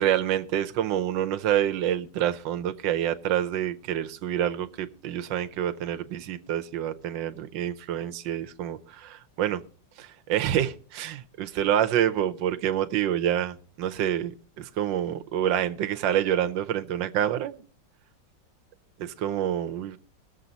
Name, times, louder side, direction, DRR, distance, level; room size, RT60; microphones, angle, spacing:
voice 1, 0.0-9.6 10.0-17.6 19.0-20.0, right 10 dB, 85° right, 1.5 m, -27 dB
22.0 x 7.4 x 4.0 m
omnidirectional pair, 2.0 m